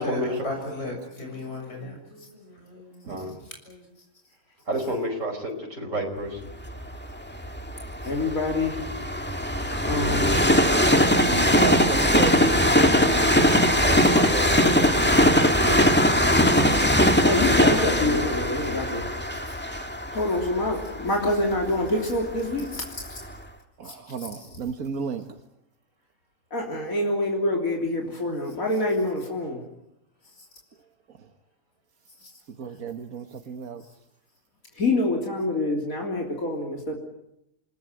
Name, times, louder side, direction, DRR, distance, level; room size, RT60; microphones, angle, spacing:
voice 1, 0.0-3.2 3.6-3.8, left 2 dB, 50° left, 2 dB, 6.7 m, -36 dB
voice 2, 4.7-6.4 13.8-14.8, equal, 65° right, 3 dB, 5.4 m, -29 dB
Train, 6.7-22.6 23.2-23.3, equal, 10° left, 1.8 m, -21 dB
voice 3, 8.0-8.8 9.6-10.4 15.6-15.9 17.2-19.1 20.1-23.2 24.2-24.3 26.5-29.6 34.8-37.0, left 2 dB, 85° left, 0 dB, 3.8 m, -26 dB
voice 4, 11.2-12.4 15.7-16.8 23.8-25.2 32.6-33.8, right 6 dB, 90° right, 6 dB, 1.8 m, -33 dB
28.5 x 19.0 x 9.2 m, 0.82 s
omnidirectional pair, 1.4 m